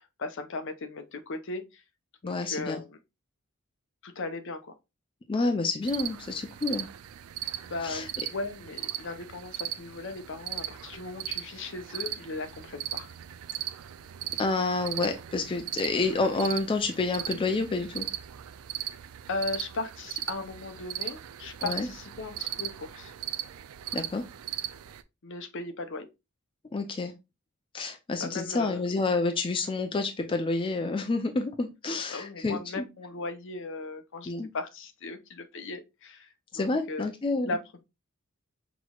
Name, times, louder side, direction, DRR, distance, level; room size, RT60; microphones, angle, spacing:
voice 1, 0.0-1.8 2.2-3.0 4.0-4.7 7.7-13.1 19.3-23.1 25.2-26.1 28.2-28.8 32.1-37.1 37.5-37.6, left 3 dB, 60° left, 0.7 m, -37 dB
voice 2, 2.2-2.8 5.3-6.9 7.8-8.1 14.4-18.0 21.6-21.9 23.9-24.2 26.7-27.1 27.7-32.8 34.3-34.5 36.5-37.6, left 3 dB, 25° left, 0.4 m, -29 dB
sound 1, 5.8-25.0, right 12 dB, 70° right, 0.4 m, -38 dB
6.0 x 3.0 x 2.3 m
head